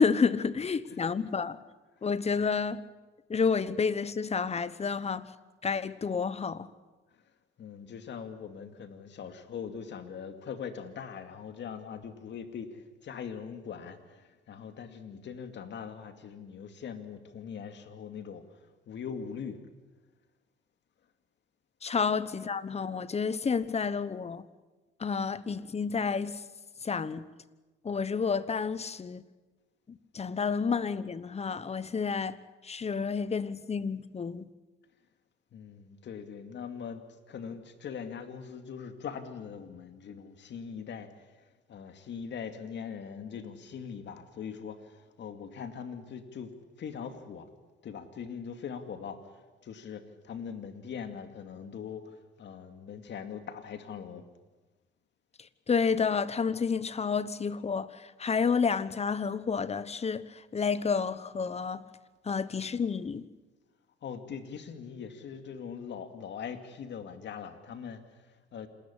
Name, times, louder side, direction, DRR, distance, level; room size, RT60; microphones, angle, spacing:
voice 1, 0.0-1.6 2.0-2.8 3.3-5.3 5.6-6.7 21.8-24.4 25.0-26.4 26.8-27.2 27.8-29.2 29.9-32.4 32.6-34.5 55.7-57.9 58.2-60.2 60.5-61.8 62.3-63.2, left 5 dB, 30° left, 1.1 m, -30 dB
voice 2, 7.6-18.4 18.9-19.6 35.5-41.2 41.7-47.5 47.8-54.2 64.0-68.7, left 7 dB, 65° left, 2.4 m, -41 dB
27.5 x 13.5 x 10.0 m
cardioid pair, 90°, 20 cm